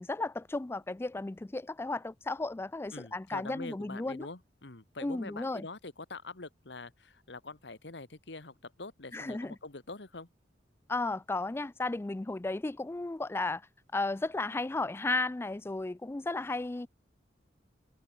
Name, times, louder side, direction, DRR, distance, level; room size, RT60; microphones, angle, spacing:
voice 1, 0.0-4.3 5.0-5.7 9.1-9.5 10.9-13.6 13.9-16.9, left 2 dB, 15° left, 0.3 m, -34 dB
voice 2, 2.9-10.3, left 3 dB, 75° left, 1.8 m, -45 dB
head